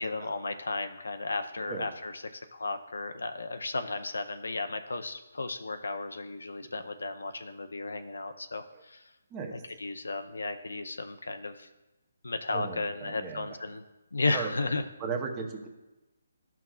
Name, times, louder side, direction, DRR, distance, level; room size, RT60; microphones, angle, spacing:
voice 1, 0.0-2.2 2.5-9.0 9.5-11.7 12.2-13.8 14.1-14.8, left 3 dB, 85° left, 7 dB, 0.6 m, -34 dB
voice 2, 9.3-9.6 12.5-13.6 14.3-14.7 15.0-15.7, right 5 dB, 20° right, 3 dB, 0.9 m, -37 dB
12.5 x 5.8 x 2.4 m, 1.1 s
hypercardioid pair, 155°, 0 cm